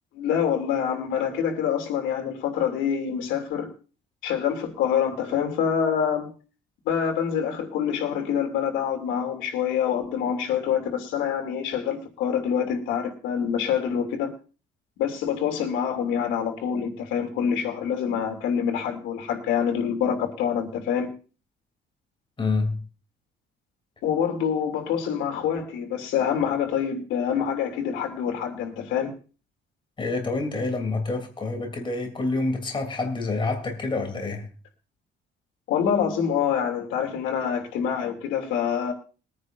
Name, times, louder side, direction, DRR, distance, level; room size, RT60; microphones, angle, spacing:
voice 1, 0.1-3.7 4.2-6.3 6.8-14.3 15.0-21.1 24.0-29.1 35.7-38.9, left 8 dB, 90° left, 3.0 m, -26 dB
voice 2, 22.4-22.8 30.0-34.5, left 3 dB, 25° left, 3.3 m, -27 dB
22.5 x 9.8 x 2.6 m
cardioid pair, 115°, 19 cm